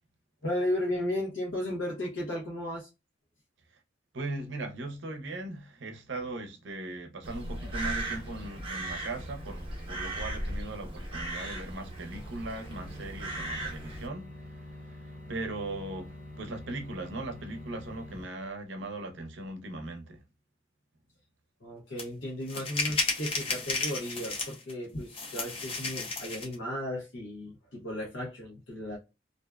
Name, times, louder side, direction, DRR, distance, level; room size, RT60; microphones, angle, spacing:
voice 1, 0.4-2.9 21.6-29.0, left 1 dB, 80° left, 0.8 m, -34 dB
voice 2, 4.1-20.2, right 2 dB, 75° right, 0.6 m, -39 dB
Crow, 7.2-14.1, right 1 dB, 30° right, 0.7 m, -37 dB
sound 1, 12.1-18.2, left 1 dB, 50° left, 1.1 m, -46 dB
sound 2, 22.0-22.1 22.5-24.7 25.1-26.5, left 3 dB, 30° left, 0.5 m, -33 dB
2.5 x 2.2 x 2.3 m
head